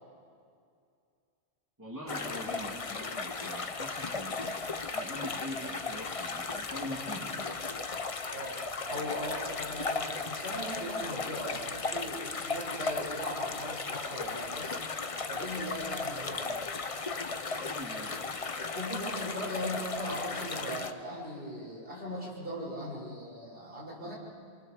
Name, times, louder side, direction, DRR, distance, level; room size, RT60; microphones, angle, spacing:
voice 1, 1.8-4.5 4.9-7.3 17.6-18.2, left 1 dB, 15° right, -5 dB, 2.9 m, -42 dB
sound 1, 2.1-20.9, left 4 dB, 35° left, 0.8 m, -36 dB
voice 2, 8.3-14.8 15.3-16.6 18.7-24.2, equal, 55° right, -4 dB, 6.6 m, -39 dB
28.0 x 24.5 x 6.8 m, 2.4 s
omnidirectional pair, 1.2 m